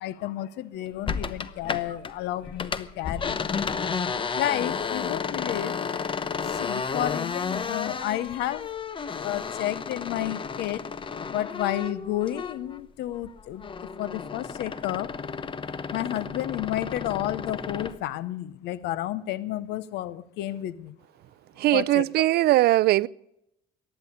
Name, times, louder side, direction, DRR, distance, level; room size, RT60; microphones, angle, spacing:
voice 1, 0.0-2.7 3.0-3.4 4.3-5.7 6.6-8.7 9.2-10.8 11.3-13.6 14.0-15.1 15.9-20.7 21.7-22.0, left 13 dB, 85° left, 0.8 m, -31 dB
sound 1, 1.1-2.1 2.4-12.8 13.1-18.0, left 6 dB, 30° left, 0.9 m, -32 dB
voice 2, 21.6-23.1, right 16 dB, 70° right, 0.5 m, -20 dB
15.0 x 10.5 x 8.0 m
cardioid pair, 110°, 17 cm